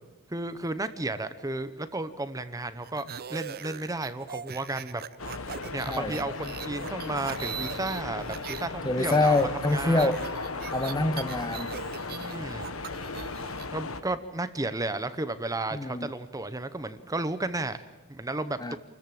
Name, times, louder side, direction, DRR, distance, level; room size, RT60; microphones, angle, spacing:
voice 1, 0.3-5.0 5.7-10.1 12.1-12.7 13.6-18.8, right 2 dB, 15° right, 0.8 m, -33 dB
sound 1, 2.8-8.7 9.0-13.7, right 8 dB, 45° right, 0.6 m, -41 dB
sound 2, 5.2-14.0, left 3 dB, 70° left, 1.3 m, -36 dB
voice 2, 5.9-6.2 8.8-10.3 10.7-11.7 15.7-16.1 18.6-18.8, left 2 dB, 20° left, 0.9 m, -26 dB
28.0 x 14.0 x 7.7 m
head